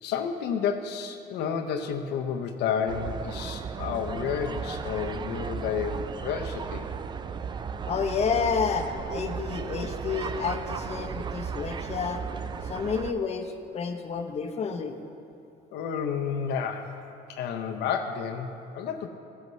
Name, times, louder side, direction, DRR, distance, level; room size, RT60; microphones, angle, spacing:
voice 1, 0.0-6.9 12.7-12.9 15.7-17.0 17.3-19.1, left 7 dB, 80° left, 4 dB, 0.7 m, -31 dB
sound 1, 2.9-13.1, right 6 dB, 25° right, 0.3 m, -35 dB
voice 2, 7.9-12.2 12.6-15.0, left 6 dB, 40° left, 5 dB, 0.7 m, -30 dB
15.0 x 7.9 x 3.1 m, 2.6 s
cardioid pair, 110°, 17 cm